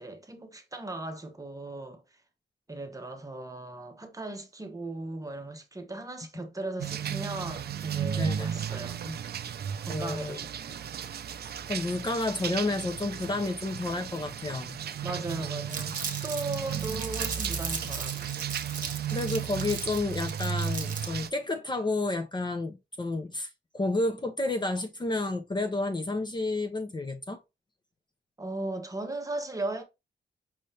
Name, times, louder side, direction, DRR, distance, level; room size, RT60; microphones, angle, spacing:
voice 1, 0.0-2.0 2.7-9.2 9.8-10.8 15.0-18.3 28.4-29.8, right 2 dB, 20° right, 0.9 m, -37 dB
sound 1, 6.8-21.3, right 9 dB, 65° right, 0.4 m, -35 dB
voice 2, 8.2-8.5 9.9-10.4 11.7-14.8 19.1-27.4, left 2 dB, 25° left, 0.7 m, -30 dB
Crumpling crinkling, 15.7-21.2, right 5 dB, 45° right, 1.1 m, -37 dB
5.6 x 2.6 x 3.2 m
wide cardioid pair, 130°, 18 cm